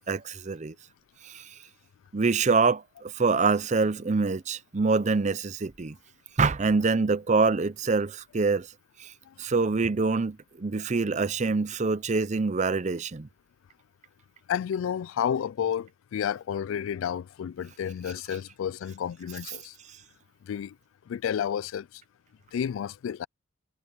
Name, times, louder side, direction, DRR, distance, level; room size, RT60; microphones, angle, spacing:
voice 1, 0.1-0.7 1.2-1.4 2.1-6.0 6.4-8.7 9.0-9.1 9.4-13.3, right 4 dB, 35° right, 0.6 m, -25 dB
voice 2, 14.5-19.8 20.4-20.8 21.1-22.0 22.5-23.3, left 8 dB, 85° left, 0.3 m, -31 dB
head